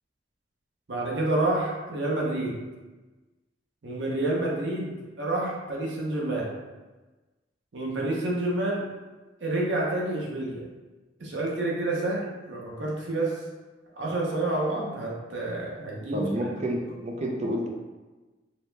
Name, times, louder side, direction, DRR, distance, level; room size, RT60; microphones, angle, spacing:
voice 1, 0.9-2.6 3.8-6.5 7.7-8.9 9.4-10.6 11.2-13.4 14.0-16.3, right 2 dB, 80° right, -3 dB, 0.7 m, -28 dB
voice 2, 16.1-17.7, equal, 40° right, 0 dB, 0.4 m, -29 dB
2.8 x 2.1 x 3.2 m, 1.2 s
head